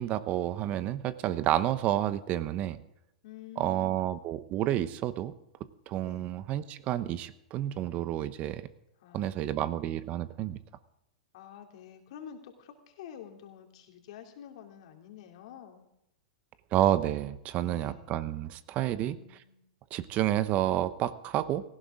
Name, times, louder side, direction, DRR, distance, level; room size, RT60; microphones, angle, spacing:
voice 1, 0.0-2.8 3.6-5.3 5.9-8.7 9.1-10.6 16.7-19.2 19.9-21.6, right 12 dB, 40° right, 14 dB, 0.9 m, -30 dB
voice 2, 3.2-4.1 6.0-6.3 9.0-9.9 11.3-15.8 17.6-18.1 18.8-19.6, left 9 dB, 60° left, 4 dB, 2.8 m, -49 dB
18.0 x 16.0 x 3.8 m, 0.81 s
hypercardioid pair, 110°, 4 cm